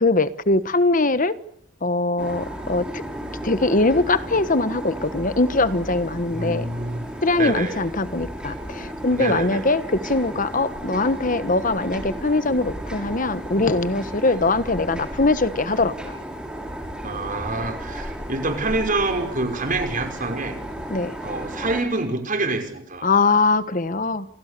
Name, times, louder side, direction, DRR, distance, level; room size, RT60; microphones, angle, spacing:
voice 1, 0.0-1.4 1.8-2.9 3.4-6.6 7.2-16.2 20.9-21.2 23.0-24.3, left 3 dB, 45° left, 13 dB, 1.4 m, -22 dB
sound 1, 2.2-21.8, equal, 5° right, 6.3 m, -34 dB
voice 2, 6.3-7.0 7.4-7.8 9.2-9.6 17.0-20.6 21.2-23.1, right 2 dB, 45° right, 5 dB, 5.8 m, -26 dB
29.0 x 28.0 x 6.9 m, 0.71 s
head